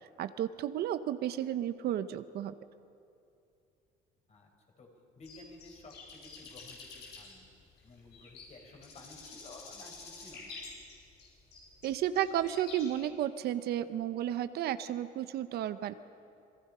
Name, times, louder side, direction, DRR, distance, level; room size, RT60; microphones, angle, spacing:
voice 1, 0.2-2.5 11.8-15.9, right 11 dB, 70° right, 12 dB, 0.9 m, -33 dB
voice 2, 5.1-7.5 7.8-10.6, left 2 dB, 40° left, 2 dB, 5.0 m, -53 dB
sound 1, 5.2-13.0, left 4 dB, 80° left, 7.3 m, -49 dB
27.5 x 21.0 x 5.6 m, 2.6 s
cardioid pair, 110°, 17 cm